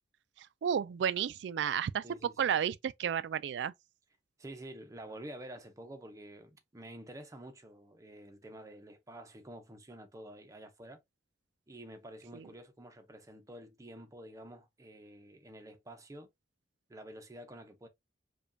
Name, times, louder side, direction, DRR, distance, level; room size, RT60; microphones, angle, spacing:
voice 1, 0.6-3.7 12.3-12.4, right 8 dB, 70° right, 0.3 m, -32 dB
voice 2, 2.0-2.6 4.4-11.0 11.7-16.3 16.9-17.9, right 1 dB, 20° right, 0.7 m, -49 dB
5.0 x 2.3 x 2.6 m
head